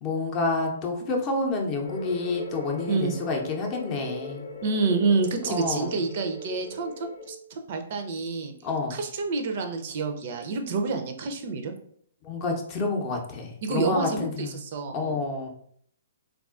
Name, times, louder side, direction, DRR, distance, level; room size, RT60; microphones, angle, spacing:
voice 1, 0.0-4.5 5.5-5.9 8.6-9.0 12.2-14.5 14.9-15.5, left 3 dB, 30° left, 1 dB, 0.6 m, -29 dB
sound 1, 1.8-7.3, left 1 dB, 70° left, 0.5 m, -39 dB
voice 2, 4.6-8.5 8.9-11.7 13.6-15.2, right 4 dB, 50° right, 6 dB, 0.4 m, -28 dB
3.6 x 2.3 x 2.4 m, 0.63 s
figure-of-eight pair, 125°, 0 cm